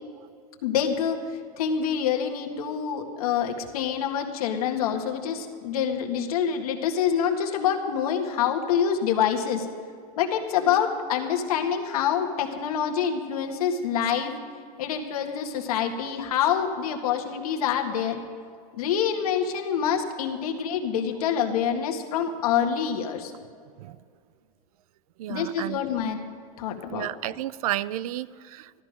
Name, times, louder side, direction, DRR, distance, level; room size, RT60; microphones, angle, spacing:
voice 1, 0.6-9.7 10.2-14.3 14.8-18.2 18.7-23.3 25.3-26.2 26.6-27.1, left 8 dB, 90° left, 3 dB, 1.8 m, -26 dB
voice 2, 25.2-25.8 26.9-28.8, right 14 dB, 80° right, 20 dB, 0.5 m, -32 dB
14.5 x 13.5 x 5.2 m, 2.2 s
supercardioid pair, 170°, 18 cm